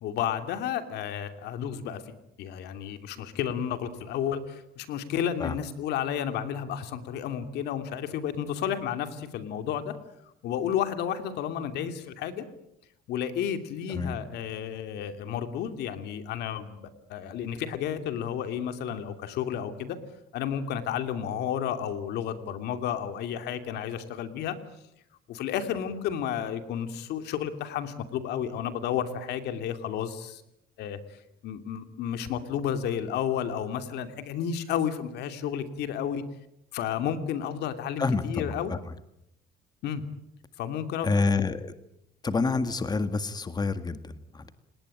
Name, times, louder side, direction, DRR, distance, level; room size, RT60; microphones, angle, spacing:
voice 1, 0.0-2.0 2.4-10.0 10.4-12.4 13.1-20.0 20.3-24.6 25.3-30.4 30.8-31.0 31.4-36.2 36.7-38.7 39.8-40.0 40.6-41.1, left 9 dB, 80° left, 9 dB, 2.8 m, -32 dB
voice 2, 38.0-38.8 41.0-41.7 42.2-44.5, left 4 dB, 25° left, 11 dB, 1.8 m, -28 dB
29.5 x 19.0 x 9.0 m, 0.80 s
cardioid pair, 110°, 17 cm